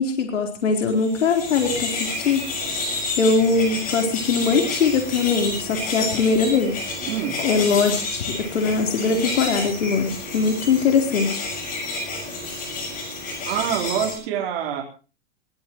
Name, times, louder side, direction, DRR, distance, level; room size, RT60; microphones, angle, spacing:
voice 1, 0.0-2.4 2.7-2.9 3.2-6.9 7.4-11.5, left 5 dB, 90° left, 3 dB, 4.2 m, -21 dB
sound 1, 0.9-14.1, left 2 dB, 25° left, 6.7 m, -30 dB
voice 2, 13.5-14.8, right 9 dB, 45° right, 0 dB, 4.2 m, -25 dB
21.5 x 18.5 x 3.1 m, 0.34 s
hypercardioid pair, 160°, 36 cm